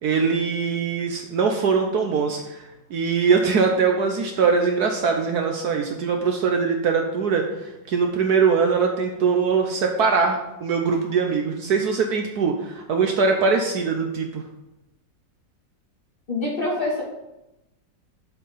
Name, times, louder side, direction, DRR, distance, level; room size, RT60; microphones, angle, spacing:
voice 1, 0.0-14.4, right 5 dB, 65° right, 3 dB, 1.2 m, -22 dB
voice 2, 16.3-17.0, left 2 dB, 30° left, -6 dB, 3.1 m, -25 dB
7.3 x 5.7 x 5.5 m, 0.93 s
omnidirectional pair, 2.0 m